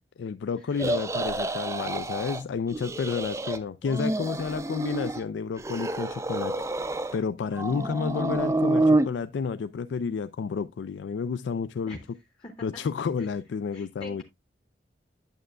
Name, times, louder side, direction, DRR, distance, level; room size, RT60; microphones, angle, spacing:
voice 1, 0.2-6.6 7.1-12.0 12.6-14.2, left 5 dB, 75° left, 0.3 m, -31 dB
sound 1, 0.8-2.4 2.7-3.6 3.8-5.2 5.6-7.2 7.5-9.1, right 2 dB, 15° right, 0.4 m, -28 dB
voice 2, 7.6-8.0 11.9-12.0 12.4-12.8 13.7-14.2, left 1 dB, 25° left, 0.9 m, -44 dB
8.9 x 7.6 x 2.3 m
head